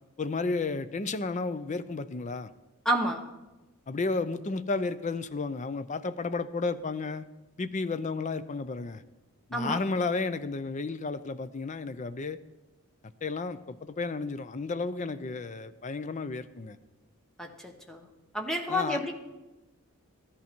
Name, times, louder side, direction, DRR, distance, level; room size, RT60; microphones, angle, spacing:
voice 1, 0.2-2.5 3.9-7.3 7.6-9.0 9.5-12.4 13.2-16.8 18.7-19.0, left 3 dB, 35° left, 12 dB, 0.5 m, -32 dB
voice 2, 2.8-3.2 9.5-9.8 17.4-18.0 18.3-19.1, equal, ahead, 3 dB, 1.0 m, -29 dB
14.0 x 11.0 x 4.5 m, 1.1 s
head